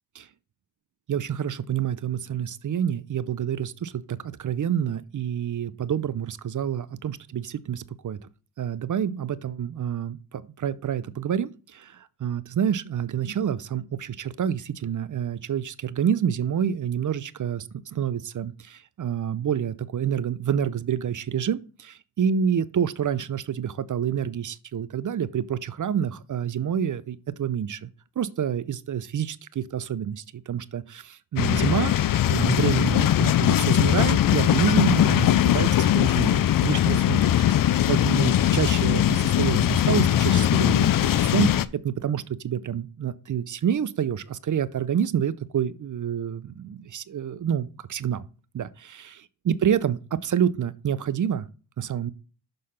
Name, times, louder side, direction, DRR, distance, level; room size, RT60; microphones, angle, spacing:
voice 1, 1.1-8.2 8.6-27.9 28.2-48.2 48.5-51.5 51.8-52.1, right 8 dB, 45° right, 0.5 m, -28 dB
sound 1, 31.4-41.7, left 11 dB, 50° left, 0.4 m, -20 dB
6.5 x 3.9 x 5.6 m
cardioid pair, 65°, 44 cm